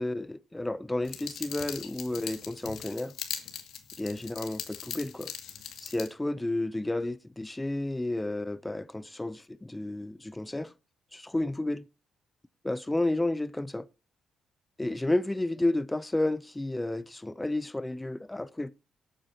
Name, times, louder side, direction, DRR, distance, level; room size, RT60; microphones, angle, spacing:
voice 1, 0.0-3.1 4.0-5.3 5.8-10.7 11.1-11.8 12.6-13.9 14.8-18.7, left 2 dB, 10° left, 0.5 m, -31 dB
sound 1, 1.0-6.1, left 8 dB, 75° left, 2.1 m, -40 dB
18.5 x 8.8 x 2.8 m
cardioid pair, 90°, 0 cm